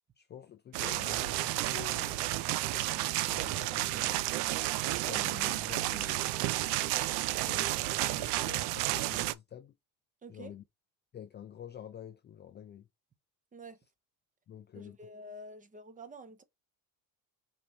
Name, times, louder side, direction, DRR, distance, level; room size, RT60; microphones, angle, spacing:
voice 1, 0.2-4.2 4.8-7.1 7.4-9.7 10.3-10.6 11.1-12.9 14.5-15.1, left 10 dB, 30° left, 0.4 m, -48 dB
sound 1, 0.7-9.3, right 17 dB, 90° right, 0.5 m, -31 dB
voice 2, 10.2-10.5 13.5-13.8 14.7-16.4, right 1 dB, 20° right, 0.7 m, -48 dB
5.1 x 2.8 x 2.8 m
cardioid pair, 125°, 40 cm